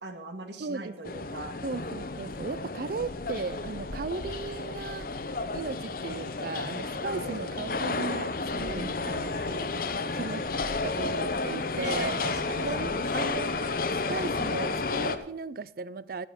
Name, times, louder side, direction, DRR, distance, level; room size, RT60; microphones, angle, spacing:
voice 1, 0.0-1.6 7.1-7.5 8.7-9.1 11.8-13.0, right 2 dB, 85° right, 6 dB, 2.0 m, -40 dB
voice 2, 0.6-1.2 1.6-5.1 5.5-9.7 10.1-10.4 10.8-12.2 12.6-13.6 13.9-16.3, right 4 dB, 55° right, 19 dB, 0.5 m, -36 dB
sound 1, 1.0-15.2, left 3 dB, 55° left, 0.9 m, -32 dB
12.5 x 10.5 x 5.7 m, 0.82 s
head